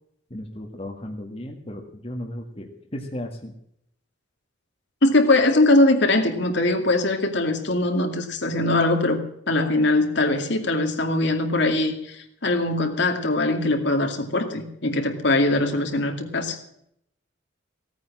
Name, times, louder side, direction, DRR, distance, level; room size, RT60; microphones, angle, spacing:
voice 1, 0.3-3.5, left 1 dB, 30° left, 2 dB, 1.8 m, -35 dB
voice 2, 5.0-16.6, left 2 dB, 60° left, 4 dB, 2.3 m, -21 dB
17.0 x 9.4 x 7.4 m, 0.73 s
head